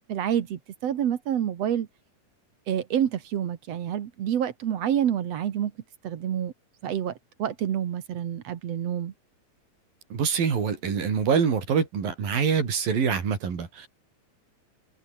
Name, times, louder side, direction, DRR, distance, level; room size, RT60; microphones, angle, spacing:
voice 1, 0.1-1.9 2.7-5.7 6.0-6.5 6.8-7.1 7.4-9.1, right 10 dB, 55° right, 2.2 m, -28 dB
voice 2, 10.1-13.9, right 6 dB, 85° right, 5.8 m, -25 dB
open air
omnidirectional pair, 3.9 m